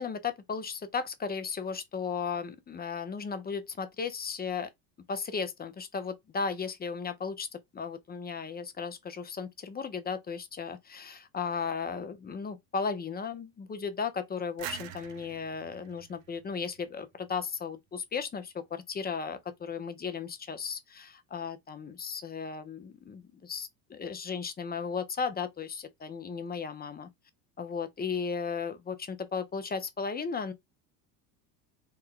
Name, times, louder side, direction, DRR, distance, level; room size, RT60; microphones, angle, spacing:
voice 1, 0.0-4.7 5.1-27.1 27.6-30.5, left 5 dB, 20° left, 0.5 m, -35 dB
sound 1, 14.6-17.3, right 11 dB, 65° right, 0.7 m, -45 dB
3.3 x 2.2 x 3.6 m
supercardioid pair, 85°, 48 cm